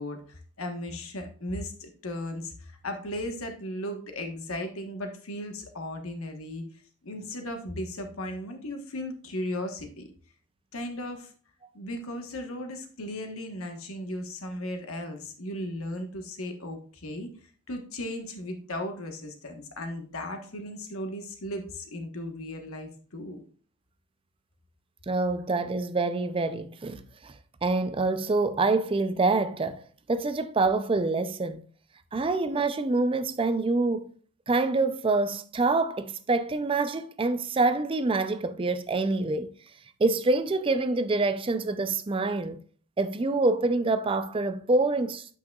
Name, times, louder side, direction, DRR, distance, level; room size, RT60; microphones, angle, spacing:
voice 1, 0.0-6.6 7.0-10.1 10.7-11.3 11.7-17.3 17.7-23.4, left 1 dB, 75° left, 1.2 m, -36 dB
voice 2, 25.1-27.3 27.6-29.8 30.1-31.7 32.1-34.1 34.5-39.5 40.0-42.6 43.0-45.3, right 3 dB, 25° right, 0.4 m, -26 dB
8.8 x 5.5 x 2.3 m
head